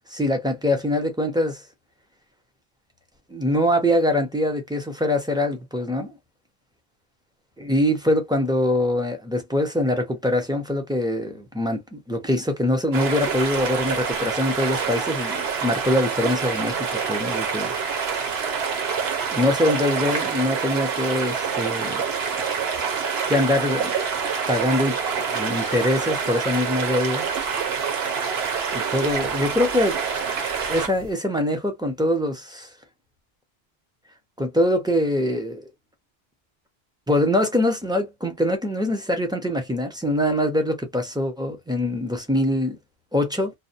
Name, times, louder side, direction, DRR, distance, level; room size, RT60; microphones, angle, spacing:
voice 1, 0.0-1.6 3.3-6.2 7.6-17.7 18.1-18.3 19.3-22.0 23.3-23.9 24.5-25.0 25.3-27.3 28.7-30.1 30.5-32.7 34.4-35.6 37.1-42.8 43.1-43.5, left 1 dB, 5° right, 0.5 m, -23 dB
sound 1, 12.9-31.1, right 6 dB, 75° right, 1.0 m, -26 dB
2.5 x 2.1 x 2.7 m
omnidirectional pair, 1.1 m